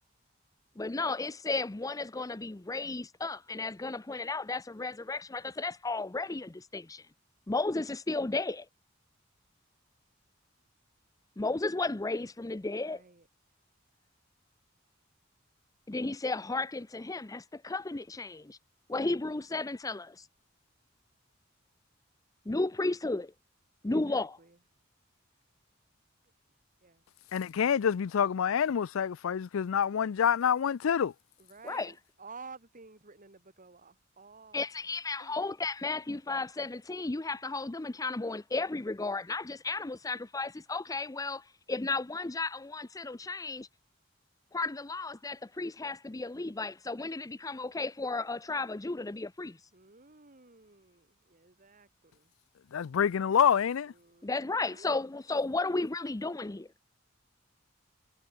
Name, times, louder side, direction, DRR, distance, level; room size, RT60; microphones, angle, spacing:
voice 1, 0.8-7.1 7.5-8.7 11.4-13.0 15.9-18.6 18.9-20.3 22.5-23.3 23.8-24.4 31.6-31.9 34.5-43.7 44.5-49.6 54.2-56.7, left 3 dB, 15° left, 0.6 m, -34 dB
voice 2, 12.7-13.3 23.8-24.6 26.8-27.0 31.4-34.7 35.2-35.3 49.7-52.3 54.0-54.9 55.3-55.4, right 4 dB, 40° right, 2.5 m, -53 dB
voice 3, 27.3-31.1 52.7-53.9, left 8 dB, 85° left, 0.4 m, -27 dB
head